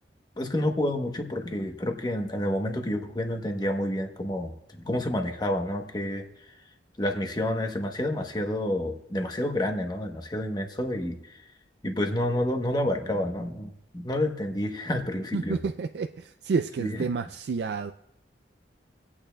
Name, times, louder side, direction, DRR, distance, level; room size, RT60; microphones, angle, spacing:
voice 1, 0.4-6.2 7.0-11.4 11.8-15.6 16.8-17.1, left 1 dB, 25° left, 0.9 m, -29 dB
voice 2, 15.3-17.9, right 5 dB, 60° right, 0.3 m, -29 dB
26.0 x 8.7 x 2.2 m
head